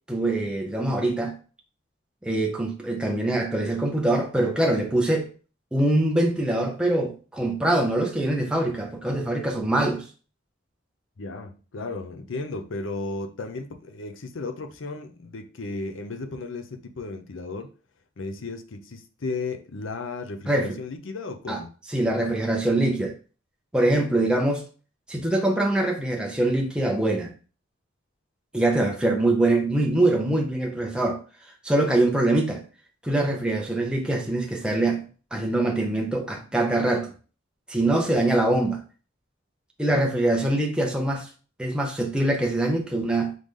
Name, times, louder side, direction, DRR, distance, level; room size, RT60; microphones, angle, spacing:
voice 1, 0.1-1.3 2.2-5.3 5.7-10.0 20.5-20.8 21.5-21.6 21.9-23.2 23.7-24.6 25.1-27.3 28.5-31.2 31.6-32.6 33.0-35.0 35.3-37.1 37.7-38.8 39.8-41.3 41.6-43.4, right 1 dB, 5° right, 0.6 m, -23 dB
voice 2, 11.2-17.7 18.2-21.7, left 3 dB, 75° left, 0.6 m, -34 dB
3.8 x 3.3 x 3.7 m
head